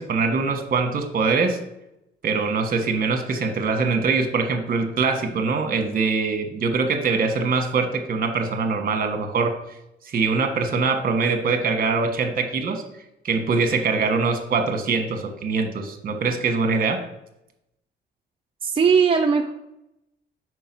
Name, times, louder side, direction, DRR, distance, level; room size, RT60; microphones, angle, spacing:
voice 1, 0.0-1.6 2.2-9.5 10.0-12.8 13.2-17.0, right 4 dB, 45° right, 5 dB, 1.2 m, -23 dB
voice 2, 18.6-19.5, right 6 dB, 25° right, 1 dB, 0.5 m, -19 dB
4.7 x 4.6 x 6.0 m, 0.86 s
cardioid pair, 90°, 20 cm